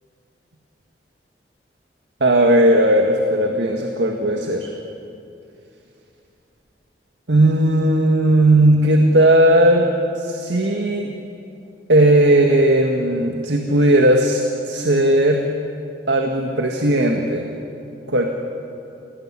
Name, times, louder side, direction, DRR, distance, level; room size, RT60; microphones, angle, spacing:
voice 1, 2.2-4.7 7.3-11.1 11.9-15.5 16.1-17.5 18.1-18.2, right 1 dB, 80° right, 3 dB, 1.8 m, -16 dB
28.0 x 18.5 x 9.8 m, 2.7 s
head